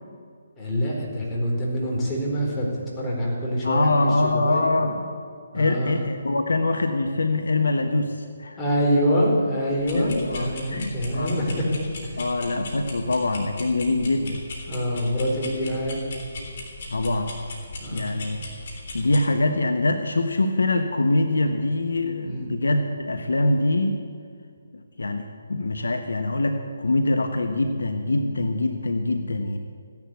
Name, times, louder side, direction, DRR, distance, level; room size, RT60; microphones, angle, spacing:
voice 1, 0.6-2.7 3.0-4.8 5.5-6.0 8.6-11.6 12.0-12.6 14.7-16.0 17.8-18.1 22.2-22.5, equal, 15° left, -4 dB, 4.3 m, -25 dB
voice 2, 3.6-5.0 5.5-8.6 9.9-11.4 12.2-14.4 16.9-17.4 17.9-18.5 18.9-24.0 24.7-29.6, left 2 dB, 70° left, 7 dB, 1.1 m, -24 dB
sound 1, 9.8-19.2, left 2 dB, 50° left, 3.5 m, -38 dB
16.0 x 10.5 x 8.1 m, 2.2 s
figure-of-eight pair, 140°, 0 cm